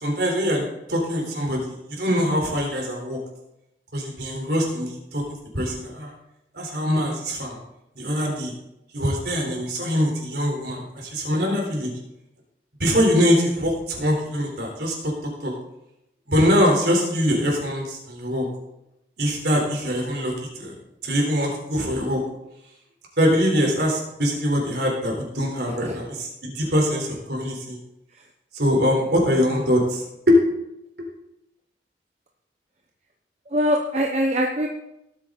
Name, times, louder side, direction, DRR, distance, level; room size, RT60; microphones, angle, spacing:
voice 1, 0.0-3.2 3.9-5.2 5.5-6.1 6.5-7.6 8.0-8.5 8.9-11.9 12.8-15.5 16.3-18.5 19.2-20.7 21.0-22.2 23.2-27.8 28.5-30.4, equal, 65° right, 0 dB, 3.9 m, -23 dB
voice 2, 33.5-34.7, equal, 35° right, 1 dB, 0.9 m, -22 dB
18.0 x 8.4 x 4.0 m, 0.86 s
head